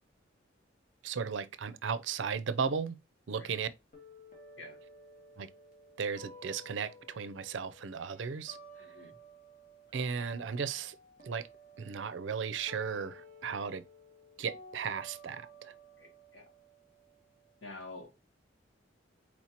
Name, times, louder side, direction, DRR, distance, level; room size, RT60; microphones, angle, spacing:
voice 1, 1.0-3.0 3.3-3.7 5.4-5.5 6.0-8.6 9.9-11.0 11.2-11.5 11.8-13.8 14.4-15.7, right 6 dB, 70° right, 0.5 m, -35 dB
sound 1, 3.9-9.9 10.2-17.9, equal, 45° left, 1.9 m, -54 dB
voice 2, 8.8-9.2 16.0-16.5 17.6-18.1, left 2 dB, 65° left, 1.6 m, -48 dB
4.3 x 4.3 x 2.8 m
head